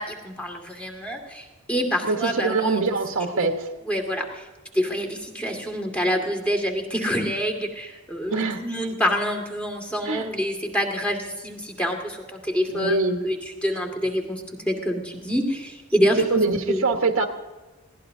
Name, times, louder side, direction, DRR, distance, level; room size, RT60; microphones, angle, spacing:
voice 1, 0.0-2.8 3.3-3.5 3.9-4.5 4.7-16.4 16.7-16.8, equal, 5° left, 1 dB, 2.1 m, -27 dB
voice 2, 2.0-3.7 8.3-8.6 10.0-10.3 12.7-13.2 16.3-17.3, right 3 dB, 65° right, 3 dB, 1.3 m, -23 dB
22.0 x 17.0 x 2.7 m, 1.2 s
head